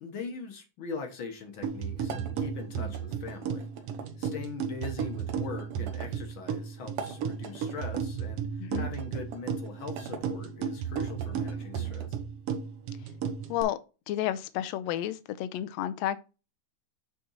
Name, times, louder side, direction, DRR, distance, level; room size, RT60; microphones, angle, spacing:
voice 1, 0.0-3.7 4.2-12.2, left 4 dB, 55° left, 1.5 m, -41 dB
sound 1, 1.6-13.6, right 7 dB, 65° right, 1.6 m, -34 dB
sound 2, 2.0-4.1 4.8-6.1 6.8-8.1 8.9-10.2 10.8-12.2, right 7 dB, 85° right, 2.6 m, -43 dB
voice 2, 14.1-16.2, left 12 dB, 80° left, 1.6 m, -31 dB
8.5 x 4.3 x 4.1 m
omnidirectional pair, 3.6 m